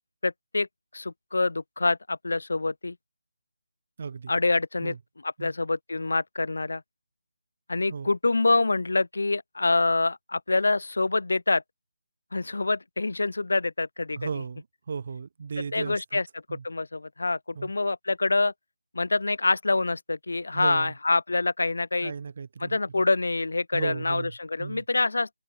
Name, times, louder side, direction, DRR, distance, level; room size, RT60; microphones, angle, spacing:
voice 1, 0.2-0.7 0.9-3.0 4.3-4.9 5.2-6.8 7.7-11.6 12.3-14.3 15.7-16.2 16.5-18.5 18.9-22.1 22.6-25.3, left 3 dB, 70° left, 0.4 m, -26 dB
voice 2, 4.0-4.3 4.8-5.0 5.4-5.5 7.9-8.1 14.2-16.2 16.5-16.6 17.5-17.7 20.5-20.9 22.0-23.1 23.7-24.8, right 5 dB, 35° right, 0.8 m, -35 dB
open air
figure-of-eight pair, 175°, 0 cm